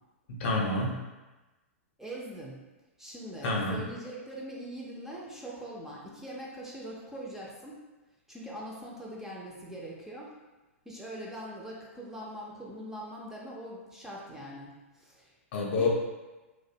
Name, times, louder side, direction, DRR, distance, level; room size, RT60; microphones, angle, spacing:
voice 1, 0.3-1.0 3.4-3.8 15.5-15.9, left 2 dB, 55° left, -2 dB, 0.6 m, -28 dB
voice 2, 2.0-2.6 3.0-7.8 8.3-10.4 10.9-15.3 15.7-15.9, right 1 dB, 5° right, -5 dB, 0.4 m, -42 dB
2.4 x 2.0 x 2.7 m, 1.1 s
hypercardioid pair, 120°, 7 cm